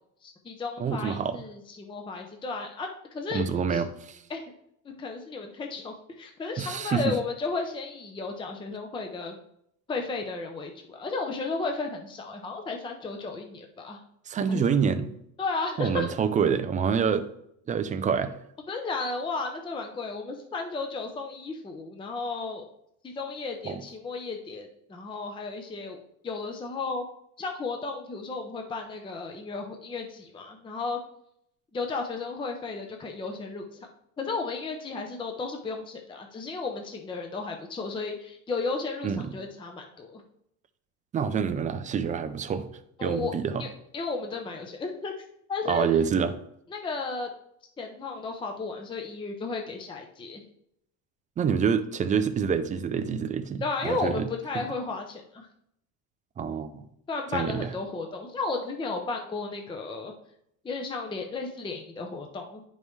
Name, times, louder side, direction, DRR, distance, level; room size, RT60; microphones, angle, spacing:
voice 1, 0.2-3.4 3.7-3.8 4.3-4.4 5.0-9.3 9.9-14.0 14.5-14.6 15.4-16.1 18.7-22.7 23.0-27.0 27.4-31.0 31.7-33.6 34.2-40.2 43.0-43.3 43.6-43.7 43.9-45.1 45.5-45.9 46.7-47.3 47.8-50.4 53.6-55.5 57.1-60.1 60.6-62.6, left 4 dB, 10° left, 3 dB, 0.6 m, -34 dB
voice 2, 0.8-1.4 3.3-4.2 6.6-7.1 14.3-15.2 15.8-17.3 17.7-18.3 23.7-23.8 39.0-39.3 41.1-42.6 43.0-43.6 45.7-46.3 51.4-54.3 56.4-56.8 57.3-57.7, right 6 dB, 20° right, 10 dB, 0.3 m, -27 dB
9.7 x 5.4 x 3.1 m, 0.74 s
cardioid pair, 140°, 42 cm